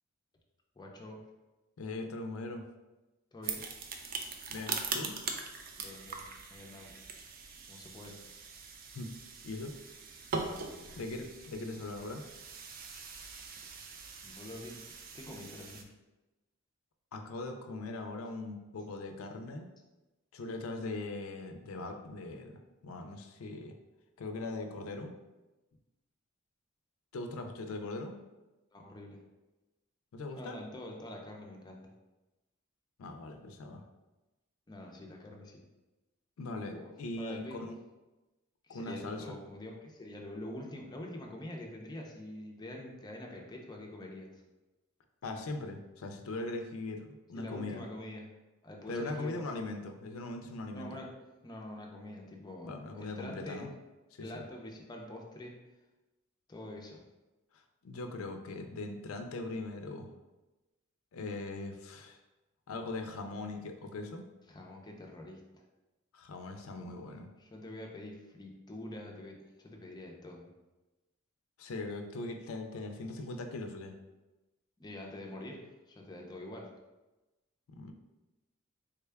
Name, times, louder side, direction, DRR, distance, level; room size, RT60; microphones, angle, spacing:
voice 1, 0.8-1.2 3.3-3.6 5.8-6.2 6.5-6.9 7.7-8.2 10.3-10.9 14.2-14.8 15.1-15.9 28.7-29.2 30.3-31.8 34.7-35.6 36.6-36.9 37.2-37.6 38.7-44.4 47.3-48.3 48.6-49.4 50.7-51.1 51.4-53.7 54.2-55.6 56.5-57.0 64.5-65.6 67.4-70.5 74.8-76.7, left 1 dB, 20° left, 0 dB, 0.5 m, -45 dB
voice 2, 1.8-2.6 4.5-5.2 8.9-9.1 9.4-9.8 11.0-12.3 17.1-19.7 20.3-22.5 22.8-23.7 24.2-25.1 27.1-28.1 30.1-30.6 33.0-33.8 36.4-37.8 38.7-39.2 45.2-47.8 48.9-50.9 52.6-53.7 54.1-54.4 57.8-60.1 61.1-62.2 62.7-64.3 66.1-67.3 71.6-73.9 77.7-77.9, left 2 dB, 80° left, 5 dB, 0.4 m, -40 dB
sound 1, 3.4-15.8, right 5 dB, 45° right, 0.3 m, -42 dB
3.5 x 2.2 x 3.3 m, 1.1 s
head